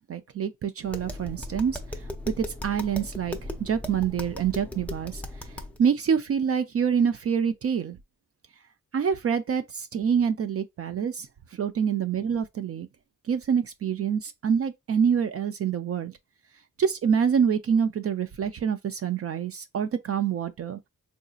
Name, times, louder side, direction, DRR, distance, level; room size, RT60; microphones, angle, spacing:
voice 1, 0.1-2.0 2.4-8.0 8.9-12.9 13.3-16.2 16.8-20.8, right 7 dB, 45° right, 0.4 m, -26 dB
Tap, 0.8-5.8, left 1 dB, 5° left, 0.6 m, -37 dB
3.8 x 2.7 x 2.3 m
cardioid pair, 105°, 34 cm